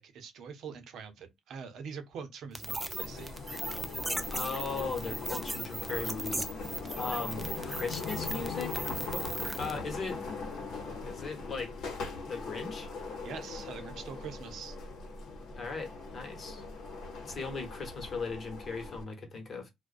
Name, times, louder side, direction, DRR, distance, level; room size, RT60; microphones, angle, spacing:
voice 1, 0.0-3.3 13.2-14.8, right 6 dB, 75° right, 0.6 m, -44 dB
sound 1, 2.5-9.8, right 1 dB, 10° right, 0.4 m, -38 dB
sound 2, 3.0-19.0, left 4 dB, 75° left, 0.8 m, -40 dB
voice 2, 4.3-6.5 7.0-9.3 9.6-10.2 11.0-11.7 12.2-12.9 15.6-16.6 17.2-19.7, left 4 dB, 45° left, 1.1 m, -38 dB
2.4 x 2.2 x 2.4 m
cardioid pair, 90°, 0 cm